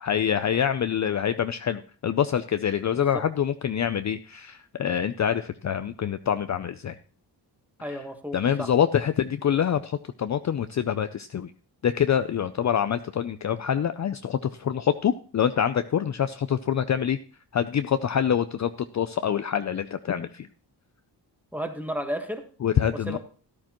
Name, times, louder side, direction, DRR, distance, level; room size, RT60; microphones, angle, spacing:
voice 1, 0.0-7.0 8.3-11.5 11.8-17.2 17.5-20.5 22.6-23.2, left 8 dB, 45° left, 10 dB, 0.5 m, -26 dB
voice 2, 7.8-8.7 21.5-22.4 23.1-23.2, equal, 5° right, 5 dB, 1.5 m, -33 dB
13.0 x 12.0 x 3.0 m, 0.40 s
wide cardioid pair, 115°, 42 cm